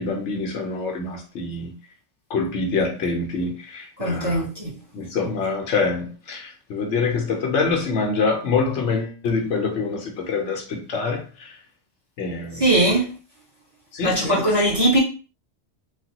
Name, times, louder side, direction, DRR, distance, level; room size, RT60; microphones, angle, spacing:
voice 1, 0.0-1.7 2.3-4.5 4.9-11.5 12.2-13.0 13.9-14.5, left 4 dB, 75° left, 1.0 m, -25 dB
voice 2, 4.0-4.7 12.6-13.1 14.0-15.0, right 1 dB, 20° right, 1.2 m, -20 dB
3.2 x 2.2 x 2.8 m
omnidirectional pair, 1.2 m